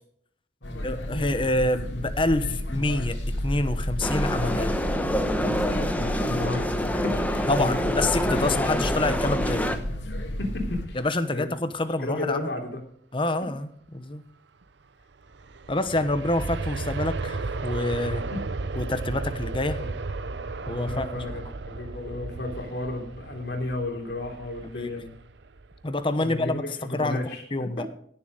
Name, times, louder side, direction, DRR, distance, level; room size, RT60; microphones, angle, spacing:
sound 1, 0.6-10.9, left 1 dB, 80° left, 2.4 m, -31 dB
voice 1, 0.8-4.8 7.5-9.7 10.9-12.5 13.1-13.7 13.9-14.2 15.7-18.2 18.8-19.8 20.7-21.1 24.6-24.9 25.8-27.2 27.5-27.9, left 2 dB, 30° left, 11 dB, 1.0 m, -27 dB
sound 2, 4.0-9.8, equal, 10° left, 1.0 m, -27 dB
voice 2, 6.0-7.9 8.3-8.8 10.4-11.0 11.3-11.5 12.0-12.8 18.3-18.4 19.8-19.9 20.6-25.1 26.1-27.4 27.8-27.9, left 2 dB, 65° left, 2 dB, 3.3 m, -33 dB
Aircraft, 15.1-26.0 26.4-26.5, right 3 dB, 75° right, 0.7 m, -34 dB
16.5 x 7.4 x 5.1 m, 0.64 s
head